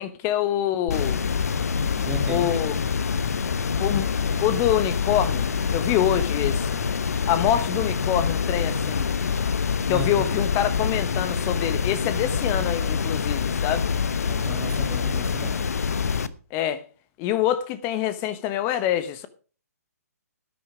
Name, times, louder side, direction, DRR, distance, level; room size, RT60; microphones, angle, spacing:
voice 1, 0.0-1.3 2.3-2.7 3.8-4.1 4.4-5.4 5.7-6.8 7.3-9.1 9.9-13.9 16.5-16.8 17.2-19.3, left 11 dB, 25° left, 1.0 m, -25 dB
sound 1, 0.9-16.3, left 6 dB, 65° left, 1.1 m, -25 dB
voice 2, 1.9-2.6 9.9-10.3 14.2-15.6, right 2 dB, 10° right, 1.1 m, -35 dB
12.5 x 9.6 x 4.9 m
figure-of-eight pair, 135°, 9 cm